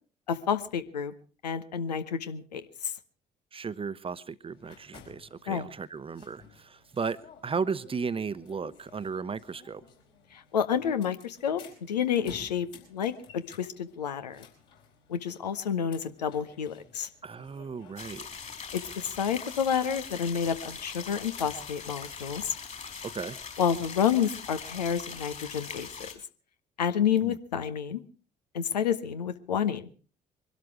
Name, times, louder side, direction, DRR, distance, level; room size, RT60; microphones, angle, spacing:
voice 1, 0.3-1.1 1.4-2.9 5.5-5.7 10.3-11.6 11.9-14.5 15.1-17.1 18.7-22.5 23.6-26.1 26.8-28.0 28.5-29.9, left 8 dB, 80° left, 0.9 m, -29 dB
voice 2, 3.5-7.2 7.4-9.8 17.2-18.3 23.0-23.4 27.2-27.4, right 5 dB, 25° right, 0.9 m, -35 dB
sound 1, 4.4-23.9, left 6 dB, 55° left, 4.9 m, -56 dB
sound 2, 18.0-26.1, left 6 dB, 35° left, 3.8 m, -41 dB
23.0 x 12.5 x 4.7 m
figure-of-eight pair, 45°, 21 cm